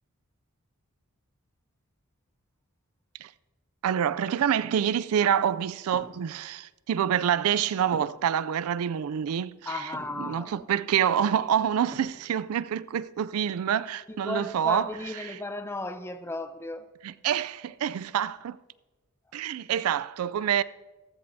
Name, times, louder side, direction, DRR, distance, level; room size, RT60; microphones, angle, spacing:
voice 1, 3.8-9.6 10.2-14.9 17.0-18.6 19.3-20.6, right 9 dB, 80° right, 0.4 m, -27 dB
sound 1, 5.9-6.2 7.9-8.3 9.9-10.2 11.9-12.3, right 1 dB, 25° right, 2.8 m, -44 dB
voice 2, 9.7-10.7 14.1-16.9, left 2 dB, 10° left, 0.6 m, -35 dB
14.5 x 14.0 x 2.7 m
head